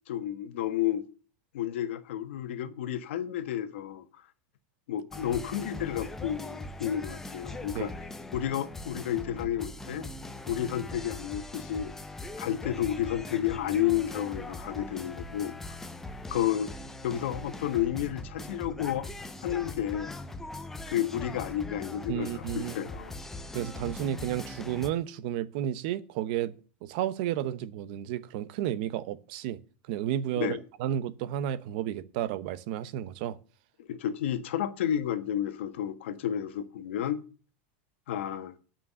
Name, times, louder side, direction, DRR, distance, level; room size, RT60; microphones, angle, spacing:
voice 1, 0.1-1.1 1.5-4.0 4.9-7.9 8.3-10.1 10.5-11.9 12.4-15.5 16.3-16.7 17.0-19.1 19.4-20.1 20.9-23.1 30.4-30.6 33.9-37.2 38.1-38.5, left 11 dB, 75° left, 1.4 m, -31 dB
sound 1, 5.1-24.9, left 2 dB, 5° left, 0.6 m, -41 dB
voice 2, 22.1-22.8 23.5-26.5 26.8-29.6 29.9-33.4, right 11 dB, 45° right, 0.8 m, -32 dB
9.7 x 5.9 x 6.9 m
supercardioid pair, 175°, 7 cm